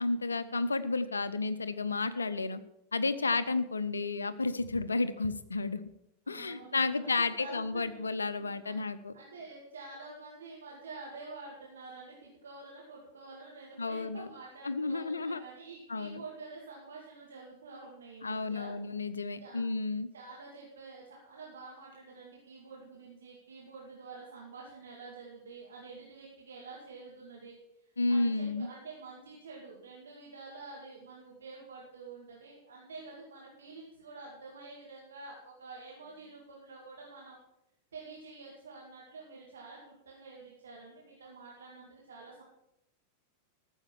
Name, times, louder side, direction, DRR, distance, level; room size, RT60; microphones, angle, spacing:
voice 1, 0.0-2.6 2.9-5.8 6.3-9.1 13.8-14.3 14.6-15.4 15.9-16.2 18.2-20.1 28.0-28.7, left 3 dB, 75° left, 13 dB, 0.8 m, -32 dB
voice 2, 6.3-8.0 8.3-8.7 9.1-18.7 19.4-19.6 20.1-37.4 37.9-42.4, right 3 dB, 70° right, -3 dB, 2.5 m, -48 dB
14.0 x 7.3 x 7.2 m, 0.83 s
figure-of-eight pair, 90°, 0 cm